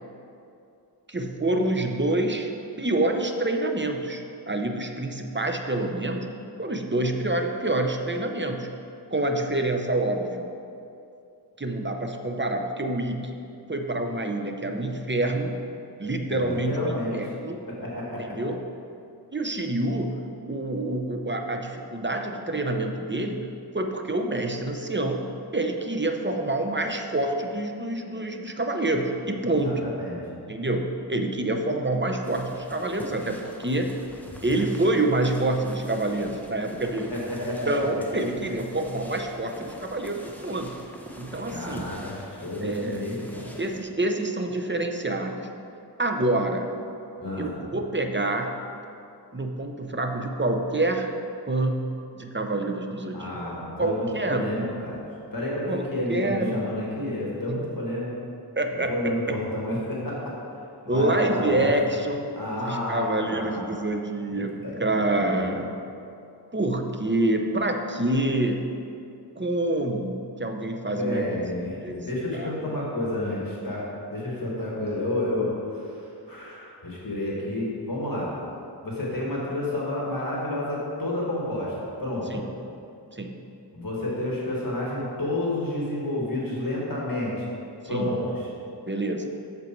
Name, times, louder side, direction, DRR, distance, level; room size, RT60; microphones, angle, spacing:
voice 1, 1.1-2.5 2.8-6.3 6.6-8.7 9.1-10.5 11.6-13.4 13.7-15.6 16.0-17.6 18.2-18.6 19.3-20.2 20.5-23.5 23.7-25.2 25.5-29.8 30.5-34.0 34.4-37.1 37.7-40.8 41.2-41.9 42.6-43.0 43.6-45.5 46.0-46.7 47.4-48.5 49.3-51.1 51.5-53.4 53.8-54.6 55.7-56.6 57.5-57.6 58.6-59.4 60.9-65.8 66.5-68.7 69.4-71.2 71.8-72.0 72.3-72.5 82.3-82.4 83.1-83.4 87.8-88.1 88.9-89.3, right 2 dB, 25° right, 4 dB, 0.7 m, -27 dB
voice 2, 16.3-17.2 17.7-18.4 29.6-30.2 37.1-37.7 41.5-43.5 47.2-47.5 53.1-55.0 55.3-58.1 58.7-60.3 60.8-61.7 62.3-63.7 64.3-65.5 70.9-73.8 74.1-78.3 78.8-81.7 82.0-82.4 83.7-87.5 87.9-88.5, left 1 dB, 55° left, -5 dB, 1.8 m, -30 dB
sound 1, 32.2-43.8, equal, 5° left, 1.0 m, -45 dB
8.0 x 6.7 x 4.5 m, 2.6 s
wide cardioid pair, 45°, 42 cm